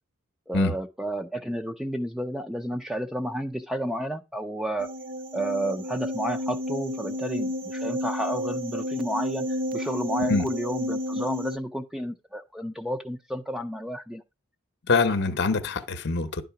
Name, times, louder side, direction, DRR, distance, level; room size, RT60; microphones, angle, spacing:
voice 1, 0.5-4.9 5.3-14.2, right 1 dB, ahead, 0.4 m, -31 dB
sound 1, 4.8-11.6, left 1 dB, 45° right, 0.7 m, -31 dB
voice 2, 14.9-16.4, left 3 dB, 50° left, 0.8 m, -24 dB
11.0 x 3.8 x 5.7 m
head